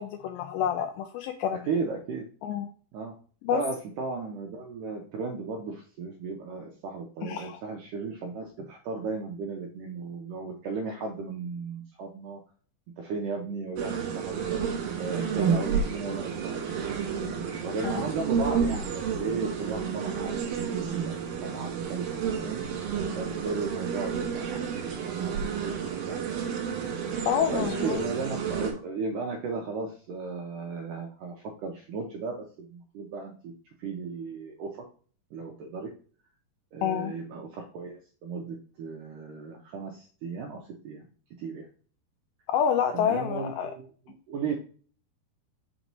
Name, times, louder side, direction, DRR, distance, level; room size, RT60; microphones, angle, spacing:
voice 1, 0.0-1.7 2.4-2.7 3.4-3.6 7.2-7.6 17.8-18.0 27.3-28.0 36.8-37.1 42.5-43.7, left 9 dB, 85° left, 5 dB, 2.1 m, -28 dB
voice 2, 1.6-2.3 2.9-3.1 3.5-12.4 13.0-14.7 15.0-17.0 17.6-26.4 27.1-33.3 33.8-34.9 35.3-35.9 36.7-41.0 41.4-41.7 42.9-44.6, right 4 dB, 90° right, 1 dB, 1.9 m, -35 dB
sound 1, 13.8-28.7, right 6 dB, 65° right, 2.7 m, -30 dB
6.2 x 3.0 x 5.3 m, 0.42 s
omnidirectional pair, 4.6 m